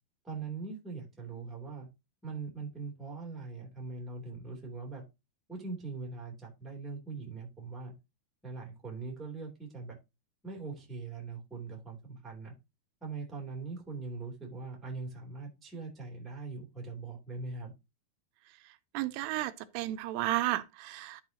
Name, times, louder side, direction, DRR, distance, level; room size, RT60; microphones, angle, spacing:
voice 1, 0.2-1.9 2.2-5.0 5.5-7.9 8.4-10.0 10.4-12.5 13.0-17.7, right 4 dB, ahead, 1.6 m, -41 dB
voice 2, 18.9-21.2, right 16 dB, 85° right, 2.7 m, -33 dB
12.0 x 5.5 x 2.8 m
omnidirectional pair, 4.7 m